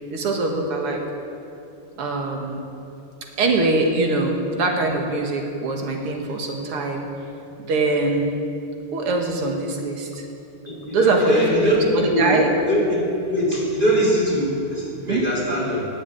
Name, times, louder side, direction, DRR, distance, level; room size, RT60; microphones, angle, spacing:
voice 1, 0.1-1.0 2.0-2.6 3.4-7.1 7.7-8.4 8.9-10.3 10.9-12.5 15.1-15.2, right 2 dB, 85° right, 2 dB, 2.7 m, -23 dB
voice 2, 10.7-12.3 12.7-15.9, equal, 20° right, -7 dB, 4.5 m, -22 dB
19.5 x 7.4 x 8.4 m, 2.8 s
omnidirectional pair, 2.4 m